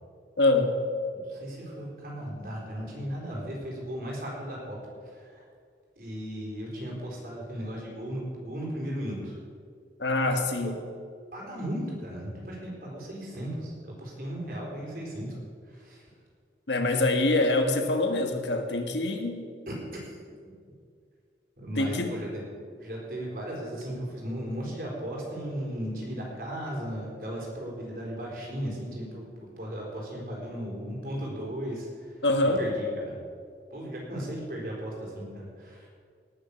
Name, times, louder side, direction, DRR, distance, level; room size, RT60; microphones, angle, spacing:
voice 1, 0.4-0.8 10.0-10.7 16.7-19.4 21.8-22.1 32.2-32.6, left 2 dB, 85° left, 5 dB, 1.5 m, -25 dB
voice 2, 1.1-5.5 6.0-9.3 10.2-10.3 10.6-10.7 11.3-15.3 15.6-16.0 19.7-20.2 20.4-20.5 21.6-22.4 22.8-33.2 33.7-35.9, equal, 50° right, -2 dB, 4.2 m, -36 dB
18.5 x 7.1 x 6.9 m, 2.2 s
head